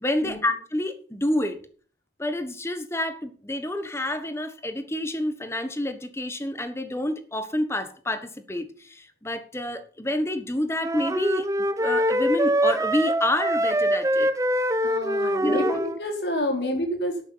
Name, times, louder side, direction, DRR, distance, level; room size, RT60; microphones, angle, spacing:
voice 1, 0.0-1.6 2.2-11.5 11.8-14.3 15.2-15.8, left 1 dB, 15° left, 9 dB, 1.3 m, -28 dB
sound 1, 10.8-16.0, right 1 dB, 20° right, 0.7 m, -24 dB
voice 2, 14.8-17.2, left 1 dB, 80° left, 3 dB, 4.1 m, -28 dB
11.5 x 9.2 x 5.7 m, 0.43 s
head